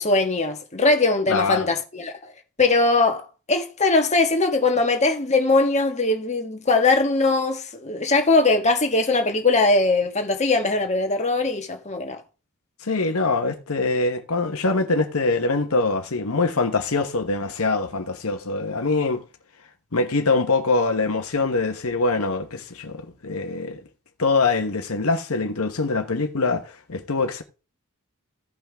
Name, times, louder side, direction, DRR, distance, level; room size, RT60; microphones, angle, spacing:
voice 1, 0.0-2.3 2.6-12.2, left 3 dB, 30° left, 1.5 m, -21 dB
voice 2, 1.3-1.7 12.8-19.2 19.9-23.8 24.2-27.4, left 3 dB, 70° left, 1.1 m, -23 dB
15.5 x 5.8 x 3.5 m
head